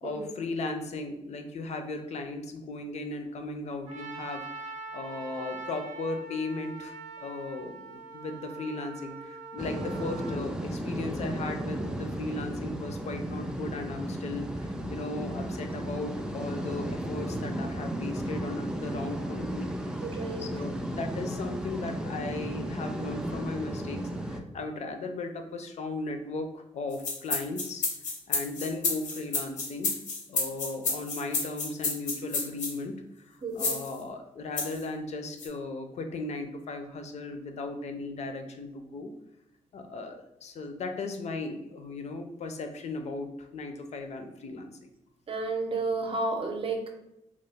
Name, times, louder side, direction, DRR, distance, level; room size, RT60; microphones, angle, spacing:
voice 1, 0.0-19.7 20.4-27.9 28.3-29.9 30.3-39.1 39.7-44.9, left 3 dB, 65° left, 6 dB, 0.5 m, -37 dB
Trumpet, 3.8-10.4, right 3 dB, 90° right, 0.6 m, -43 dB
sound 1, 9.6-24.4, right 1 dB, 5° right, 0.3 m, -34 dB
voice 2, 20.0-20.5 33.4-33.8 45.3-46.9, right 3 dB, 45° right, 3 dB, 0.6 m, -32 dB
sound 2, 26.9-32.7 33.6-33.9 34.6-34.8 35.4-35.5, left 3 dB, 90° left, 0.8 m, -30 dB
2.9 x 2.0 x 3.4 m, 0.86 s
cardioid pair, 80°, 13 cm